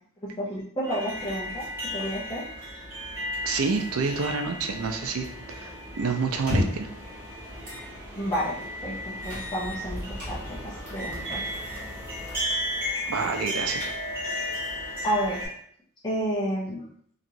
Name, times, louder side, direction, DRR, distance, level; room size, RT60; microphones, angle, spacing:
voice 1, 0.2-1.7 1.9-2.4 8.1-8.5 8.8-11.4 15.0-15.4 16.0-16.8, equal, 20° left, -6 dB, 0.5 m, -30 dB
sound 1, 0.8-15.5, left 1 dB, 10° right, 1.2 m, -35 dB
voice 2, 3.4-6.9 10.7-10.9 13.1-13.9, right 4 dB, 80° right, 5 dB, 0.4 m, -28 dB
sound 2, 6.3-6.9 7.6-7.9 8.3-8.4 9.2-10.3 10.9-11.2 11.5-11.9 12.3-12.6 12.9-13.0 13.5-14.3, left 1 dB, 40° right, 1.4 m, -32 dB
2.9 x 2.7 x 2.6 m, 0.62 s
head